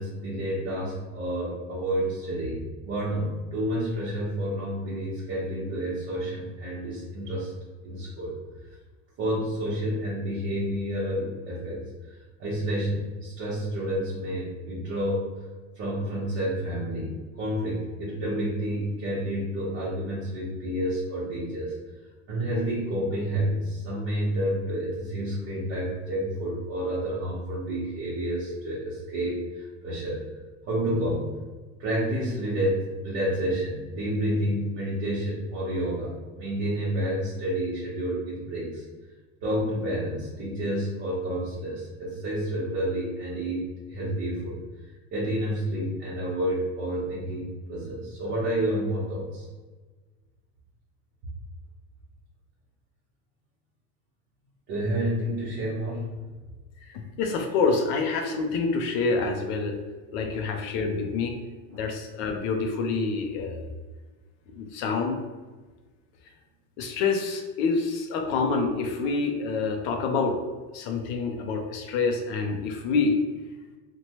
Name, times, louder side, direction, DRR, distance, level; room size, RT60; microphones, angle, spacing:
voice 1, 0.0-7.5 7.8-8.4 9.2-15.3 15.7-21.7 22.3-30.2 30.7-31.3 31.8-38.8 39.4-44.6 45.1-49.5 54.7-56.1 60.2-60.4 68.2-68.3, right 1 dB, 45° right, -7 dB, 0.8 m, -29 dB
voice 2, 56.8-59.8 60.1-61.4 61.7-63.7 64.5-65.2 66.8-70.4 70.7-73.2, left 4 dB, 65° left, 3 dB, 0.5 m, -27 dB
2.8 x 2.1 x 2.9 m, 1.3 s
cardioid pair, 150°, 34 cm